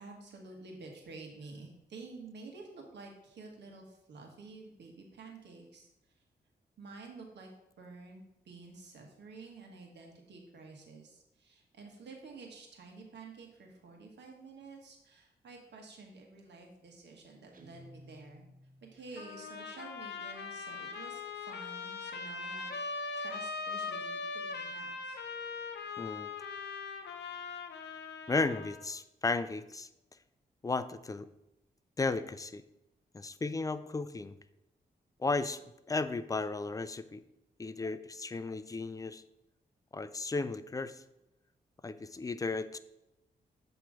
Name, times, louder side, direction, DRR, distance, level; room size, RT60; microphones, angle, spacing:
voice 1, 0.0-5.9 6.8-7.5 7.8-18.5 18.8-22.7 23.2-25.2, right 3 dB, 80° right, 1 dB, 1.3 m, -50 dB
Guitar, 17.5-19.2, equal, 50° right, 0.8 m, -56 dB
Trumpet, 19.2-28.8, left 4 dB, 75° left, 0.6 m, -40 dB
voice 2, 26.0-26.3 28.3-29.9 30.6-31.3 32.0-32.6 33.1-34.4 35.2-37.2 37.6-39.2 39.9-41.0 41.8-42.8, left 3 dB, 20° left, 13 dB, 0.3 m, -34 dB
7.4 x 3.1 x 4.7 m, 0.87 s
cardioid pair, 75°, 18 cm